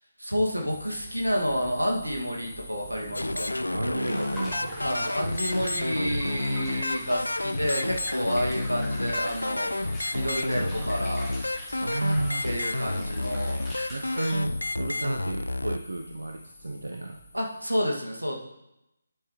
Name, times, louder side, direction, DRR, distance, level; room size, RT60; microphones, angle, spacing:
voice 1, 0.2-3.5 4.8-9.9 10.1-11.3 12.4-13.6 17.3-18.4, equal, 90° right, -1 dB, 2.2 m, -29 dB
sound 1, 0.7-17.8, left 1 dB, 40° left, 2.5 m, -44 dB
sound 2, 3.1-15.8, left 2 dB, 80° left, 0.4 m, -30 dB
voice 2, 3.7-4.9 10.5-10.9 11.8-12.5 13.9-17.2, right 2 dB, 70° right, 3 dB, 0.8 m, -32 dB
sound 3, 4.0-14.4, left 1 dB, 5° left, 1.6 m, -43 dB
9.3 x 8.1 x 3.2 m, 0.88 s
figure-of-eight pair, 150°, 0 cm